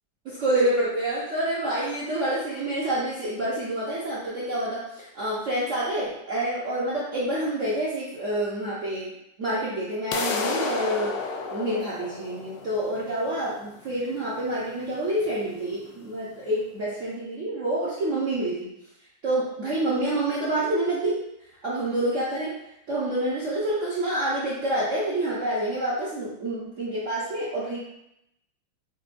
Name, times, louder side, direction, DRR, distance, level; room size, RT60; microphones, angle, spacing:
voice 1, 0.2-9.1 9.4-11.2 11.5-18.7 19.2-21.2 21.6-22.5 22.9-27.8, right 1 dB, 70° right, -8 dB, 0.7 m, -27 dB
sound 1, 10.1-16.1, left 4 dB, 80° left, 1.4 m, -32 dB
6.2 x 2.2 x 2.5 m, 0.80 s
omnidirectional pair, 2.3 m